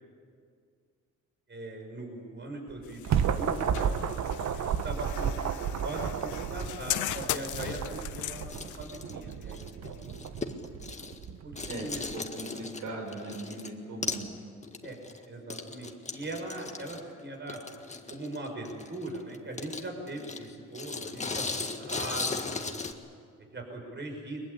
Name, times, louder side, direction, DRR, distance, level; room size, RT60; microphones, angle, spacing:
voice 1, 1.5-4.0 4.5-5.3 5.8-10.2 11.4-12.0 14.8-15.0 15.3-17.6 18.1-22.8 23.4-24.4, right 2 dB, 35° right, 2 dB, 6.1 m, -40 dB
sound 1, 2.7-12.1, right 8 dB, 65° right, 1.2 m, -33 dB
sound 2, 2.8-10.7, left 12 dB, 75° left, 1.0 m, -39 dB
sound 3, 8.4-11.3 11.5-13.7 14.0-14.3 14.6-22.9, left 4 dB, 25° left, 1.7 m, -38 dB
voice 2, 11.6-14.3, right 2 dB, 85° right, 1 dB, 5.6 m, -39 dB
23.0 x 20.5 x 8.5 m, 2.1 s
cardioid pair, 90°, 30 cm